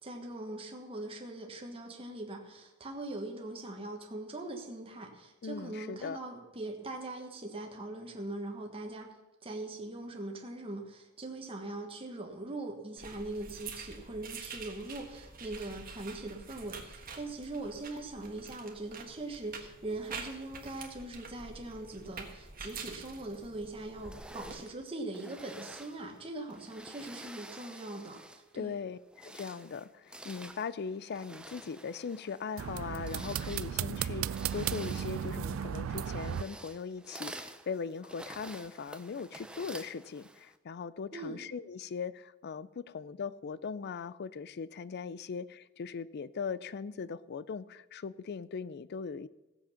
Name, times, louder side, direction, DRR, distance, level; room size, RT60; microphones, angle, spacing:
voice 1, 0.0-9.1 9.4-28.8 41.1-41.4, right 2 dB, 30° right, 1 dB, 1.4 m, -41 dB
voice 2, 5.4-6.2 28.6-49.3, left 5 dB, 55° left, 18 dB, 0.4 m, -39 dB
sound 1, 13.0-24.5, right 5 dB, 45° right, 1.5 m, -47 dB
sound 2, 24.0-28.6 29.0-40.6, right 1 dB, 5° right, 0.5 m, -49 dB
sound 3, 32.6-36.4, right 9 dB, 70° right, 0.3 m, -35 dB
16.0 x 7.7 x 5.7 m, 1.1 s
head